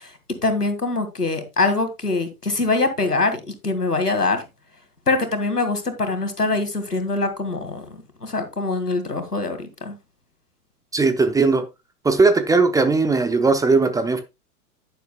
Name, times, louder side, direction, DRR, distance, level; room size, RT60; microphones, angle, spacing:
voice 1, 0.4-4.4 5.1-7.8 8.2-10.0, left 3 dB, 90° left, 2.2 m, -23 dB
voice 2, 10.9-11.6 12.0-14.2, right 3 dB, 10° right, 0.7 m, -18 dB
10.0 x 10.0 x 2.3 m
figure-of-eight pair, 100°, 45 cm